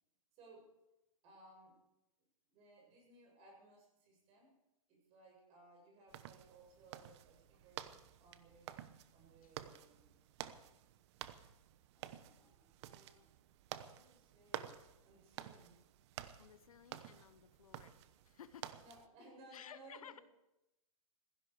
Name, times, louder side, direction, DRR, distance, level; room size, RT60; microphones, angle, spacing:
voice 1, 0.3-0.7 1.2-1.8 2.5-4.5 4.9-7.9 8.2-8.8 9.1-10.2 11.9-13.3 13.7-15.8 18.8-20.2, right 2 dB, 35° right, 1 dB, 7.6 m, -62 dB
sound 1, 6.1-19.1, right 12 dB, 50° right, 1.0 m, -51 dB
voice 2, 16.4-18.0 18.2-18.7 19.5-20.2, left 9 dB, 80° left, 14 dB, 1.2 m, -56 dB
16.0 x 15.5 x 5.0 m, 0.91 s
hypercardioid pair, 130°, 18 cm